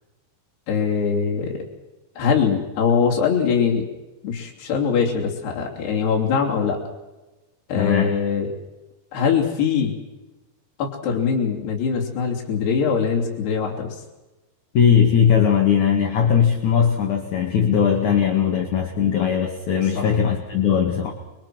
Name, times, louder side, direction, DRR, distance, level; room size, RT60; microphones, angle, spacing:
voice 1, 0.7-1.6 2.2-3.9 4.2-6.8 7.7-8.5 9.1-9.9 10.8-14.0 20.0-20.1, left 6 dB, 70° left, -2 dB, 5.2 m, -22 dB
voice 2, 7.8-8.1 14.7-21.1, left 7 dB, 50° left, 2 dB, 3.0 m, -19 dB
28.0 x 23.0 x 6.2 m, 1.1 s
omnidirectional pair, 4.9 m